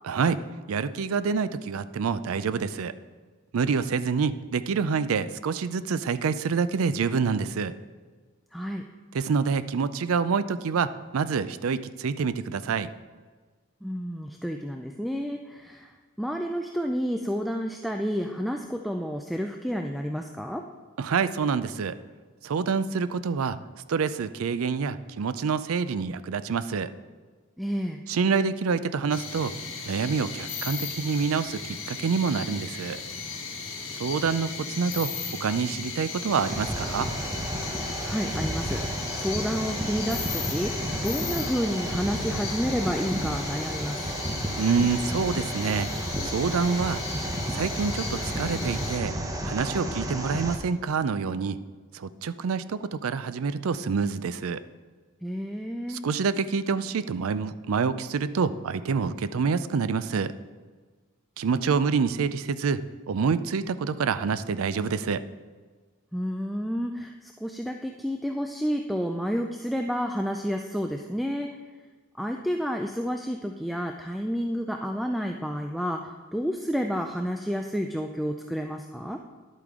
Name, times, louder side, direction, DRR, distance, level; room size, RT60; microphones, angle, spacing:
voice 1, 0.0-0.4 0.7-2.9 3.5-7.7 9.1-12.9 21.0-22.0 22.4-23.6 23.9-26.9 28.1-29.5 29.8-33.0 34.0-35.1 35.4-37.1 44.6-45.9 46.2-47.0 47.5-49.1 49.4-51.6 51.9-54.6 55.9-60.3 61.4-65.2, right 5 dB, 90° right, 14 dB, 0.4 m, -27 dB
voice 2, 8.5-8.8 13.8-20.7 27.6-28.0 38.0-44.1 55.2-56.0 66.1-71.6 72.2-79.2, equal, ahead, 4 dB, 0.3 m, -30 dB
sound 1, 29.1-49.0, left 5 dB, 65° left, 1.8 m, -36 dB
sound 2, 36.3-50.6, right 1 dB, 15° right, 0.8 m, -32 dB
11.0 x 8.3 x 3.6 m, 1.4 s
head